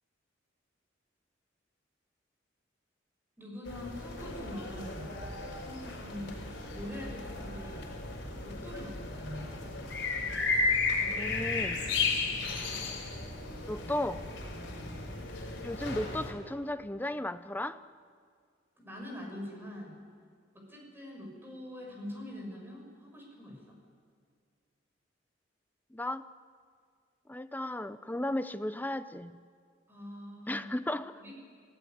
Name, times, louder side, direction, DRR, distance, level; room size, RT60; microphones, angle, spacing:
voice 1, 3.4-5.1 5.6-6.4 6.7-7.9 8.4-9.5 10.9-11.4 14.5-15.0 18.8-20.0 20.5-23.8 29.9-30.7 31.1-31.3, left 1 dB, 10° right, 0 dB, 6.5 m, -44 dB
sound 1, 3.6-16.3, left 3 dB, 65° left, 5.5 m, -34 dB
voice 2, 11.1-11.8 13.7-14.3 15.6-17.8 25.9-26.3 27.3-29.4 30.5-31.2, left 1 dB, 10° left, 11 dB, 0.6 m, -35 dB
28.0 x 17.0 x 9.5 m, 2.1 s
head